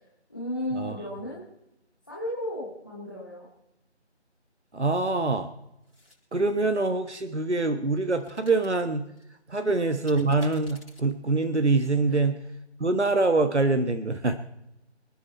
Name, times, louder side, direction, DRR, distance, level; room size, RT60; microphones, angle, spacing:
voice 1, 0.3-1.4 2.1-3.5 9.6-9.7 12.1-12.2, left 1 dB, 15° left, -6 dB, 1.9 m, -34 dB
voice 2, 4.7-5.5 6.3-9.0 9.5-12.4 12.8-14.4, right 3 dB, 70° right, 8 dB, 1.5 m, -24 dB
sound 1, 5.8-6.2 8.1-8.7 9.2-9.3 10.0-11.0, left 2 dB, 60° left, 7.6 m, -53 dB
27.0 x 10.5 x 4.3 m, 0.86 s
figure-of-eight pair, 170°, 35 cm